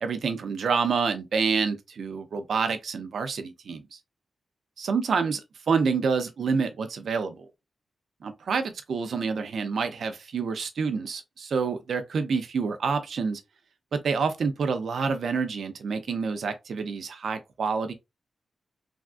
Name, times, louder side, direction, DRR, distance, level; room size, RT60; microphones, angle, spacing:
voice 1, 0.0-3.8 4.8-5.4 5.7-7.5 8.2-13.4 13.9-17.9, right 5 dB, 70° right, 0.5 m, -28 dB
3.4 x 2.3 x 2.4 m
wide cardioid pair, 175°, 0 cm